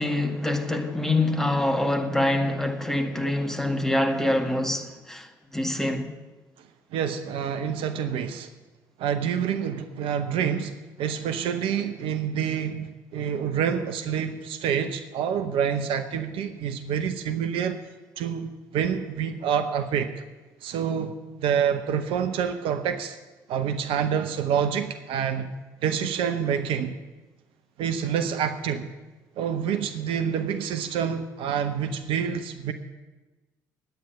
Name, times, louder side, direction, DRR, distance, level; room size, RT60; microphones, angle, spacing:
voice 1, 0.0-5.3 5.5-6.1, left 1 dB, 5° left, 2.0 m, -25 dB
voice 2, 6.9-8.5 9.0-10.7 11.0-17.8 18.2-20.1 20.6-21.1 21.4-23.2 23.5-25.5 25.8-26.9 27.8-28.9 29.4-32.7, right 8 dB, 60° right, 0.8 m, -27 dB
9.3 x 9.2 x 9.6 m
figure-of-eight pair, 50°, 10 cm